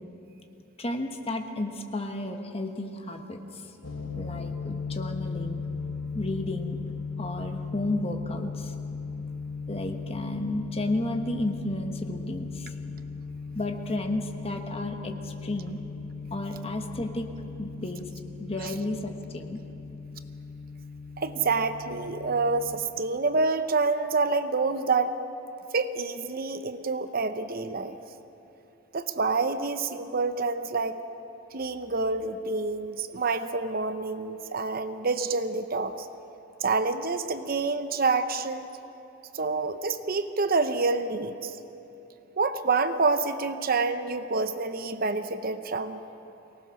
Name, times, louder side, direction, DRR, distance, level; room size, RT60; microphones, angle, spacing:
voice 1, 0.8-3.7 4.2-5.6 6.1-6.8 7.2-8.7 9.7-12.7 13.5-15.8 16.3-18.1 18.4-19.6, left 1 dB, 30° left, 5 dB, 1.3 m, -32 dB
sound 1, 3.8-22.8, left 4 dB, 65° left, 1.5 m, -37 dB
voice 2, 21.2-25.2 25.7-28.0 28.9-31.0 31.5-36.1 36.6-38.7 39.3-41.6 42.4-46.0, right 4 dB, 45° right, 10 dB, 0.7 m, -27 dB
24.0 x 18.5 x 6.3 m, 3.0 s
head